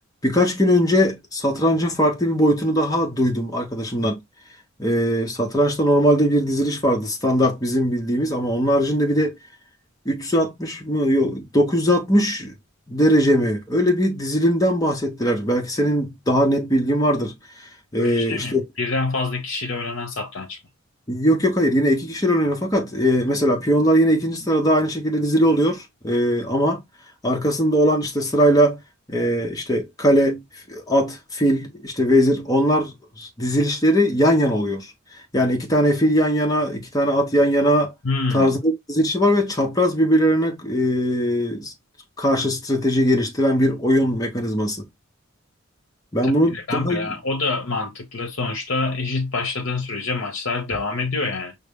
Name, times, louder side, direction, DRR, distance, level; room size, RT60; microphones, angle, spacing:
voice 1, 0.2-4.2 4.8-9.4 10.0-12.6 12.9-17.3 17.9-18.6 21.1-26.8 27.2-28.8 29.1-30.4 30.7-32.9 33.2-34.9 35.3-37.9 38.3-41.7 42.2-44.9 46.1-47.1, equal, 20° left, 1.0 m, -20 dB
voice 2, 18.0-20.6 38.0-38.5 46.2-51.6, left 3 dB, 70° left, 0.8 m, -26 dB
5.4 x 2.1 x 3.5 m
head